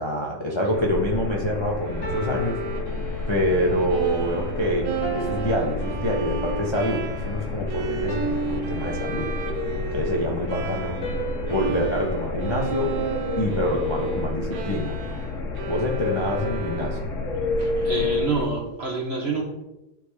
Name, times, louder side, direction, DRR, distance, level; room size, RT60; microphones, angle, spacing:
voice 1, 0.0-2.6 3.3-4.9 5.1-9.3 9.9-11.0 11.5-12.9 13.4-15.0 15.7-17.0, equal, 25° left, -1 dB, 0.6 m, -26 dB
sound 1, 0.7-18.4, left 3 dB, 50° left, 1.3 m, -30 dB
Bowed string instrument, 1.8-11.2 11.5-17.3, right 7 dB, 70° right, 1.2 m, -34 dB
sound 2, 2.0-3.6 5.0-6.7 8.1-9.7 11.0-13.4, right 1 dB, 70° left, 2.4 m, -35 dB
voice 2, 17.6-19.4, right 3 dB, 45° right, 1 dB, 0.9 m, -27 dB
10.0 x 3.4 x 4.8 m, 0.97 s
omnidirectional pair, 1.9 m